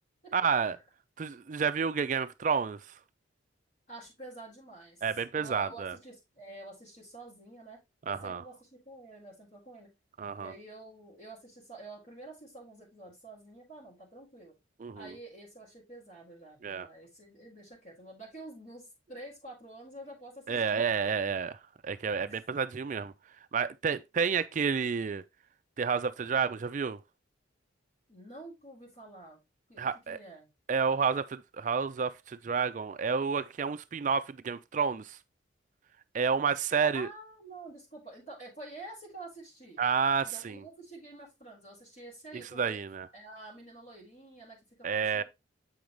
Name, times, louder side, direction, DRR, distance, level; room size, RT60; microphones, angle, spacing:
voice 1, 0.3-0.8 1.2-2.8 5.0-6.0 8.1-8.4 10.2-10.5 14.8-15.2 16.6-16.9 20.5-21.5 21.8-23.1 23.5-25.2 25.8-27.0 29.8-30.2 30.7-35.2 36.1-37.1 39.8-40.6 42.3-43.1 44.8-45.2, right 6 dB, 40° right, 0.4 m, -30 dB
voice 2, 3.9-5.0 5.3-7.8 8.0-9.9 10.4-14.5 14.9-20.9 22.3-22.4 28.1-29.4 29.7-30.5 36.8-39.8 40.2-42.8 43.1-45.2, right 2 dB, 45° left, 4.3 m, -48 dB
7.8 x 5.2 x 3.1 m
head